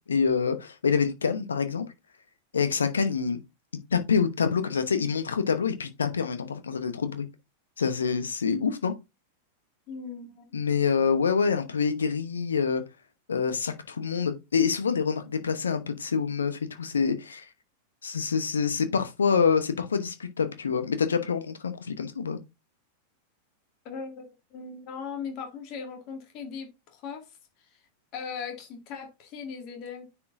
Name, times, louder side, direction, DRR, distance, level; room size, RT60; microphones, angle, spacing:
voice 1, 0.1-1.9 2.5-3.4 3.9-7.3 7.8-8.9 10.5-12.8 13.3-17.4 18.0-22.4, left 6 dB, 70° left, 1.0 m, -26 dB
voice 2, 9.9-10.4 23.8-27.3 28.1-30.1, left 6 dB, 40° left, 2.1 m, -38 dB
9.6 x 4.5 x 2.6 m
figure-of-eight pair, 90°, 0 cm